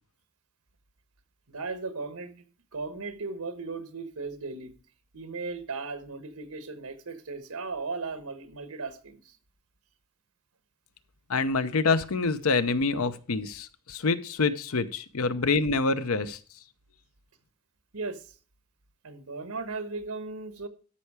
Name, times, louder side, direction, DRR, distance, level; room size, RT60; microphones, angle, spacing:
voice 1, 1.5-2.4 2.7-4.7 5.1-9.4 15.4-15.5 17.9-18.3 19.0-20.7, right 3 dB, 85° right, 1.3 m, -36 dB
voice 2, 11.3-16.4, left 4 dB, 75° left, 0.7 m, -26 dB
12.5 x 5.7 x 4.8 m
head